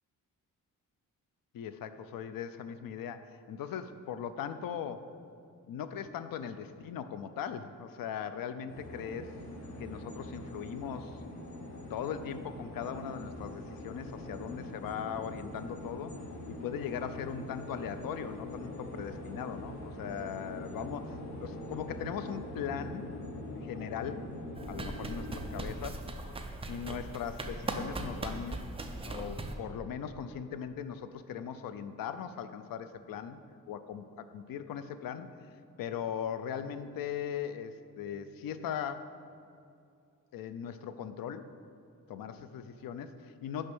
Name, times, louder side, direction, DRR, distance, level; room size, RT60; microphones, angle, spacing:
voice 1, 1.5-5.1 5.7-9.3 9.8-11.2 11.9-16.1 16.5-23.1 23.6-24.2 24.7-26.0 26.7-28.7 29.0-33.4 33.7-35.4 35.8-39.1 40.3-41.5 42.1-43.7, left 8 dB, 85° left, 11 dB, 0.5 m, -39 dB
sound 1, 8.7-25.6, left 1 dB, 55° left, 1.4 m, -43 dB
sound 2, 24.6-29.5, right 2 dB, 15° right, 0.4 m, -39 dB
6.4 x 5.5 x 6.0 m, 2.4 s
wide cardioid pair, 155°, 33 cm